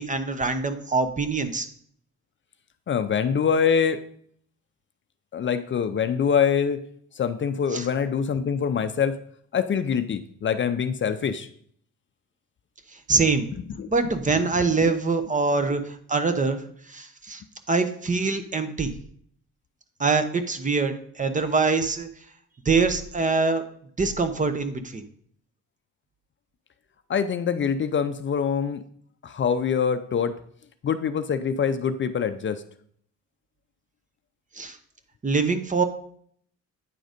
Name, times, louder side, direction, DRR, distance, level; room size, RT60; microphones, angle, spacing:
voice 1, 0.0-1.7 7.7-7.9 13.1-13.5 13.9-16.6 16.9-17.4 17.7-18.9 20.0-22.1 22.7-23.6 24.0-25.0 34.6-34.8 35.2-35.8, right 4 dB, 25° right, 10 dB, 0.8 m, -24 dB
voice 2, 2.9-4.0 5.3-6.8 7.2-9.2 9.5-11.5 13.8-13.9 14.9-15.0 27.1-28.8 29.2-30.3 30.8-32.6, left 7 dB, 40° left, 10 dB, 0.5 m, -24 dB
9.2 x 3.8 x 5.1 m, 0.62 s
cardioid pair, 90°, 30 cm